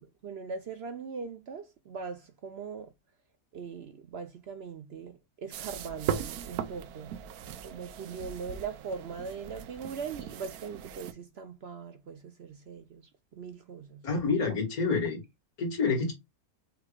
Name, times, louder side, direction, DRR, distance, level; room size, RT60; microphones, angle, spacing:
voice 1, 0.2-2.9 3.5-7.2 7.6-13.0 13.3-14.1, right 5 dB, 60° right, 0.7 m, -40 dB
sound 1, 5.5-11.1, right 9 dB, 85° right, 1.1 m, -38 dB
voice 2, 14.0-15.2 15.6-16.1, left 4 dB, 80° left, 2.2 m, -28 dB
5.6 x 3.2 x 2.3 m
omnidirectional pair, 1.5 m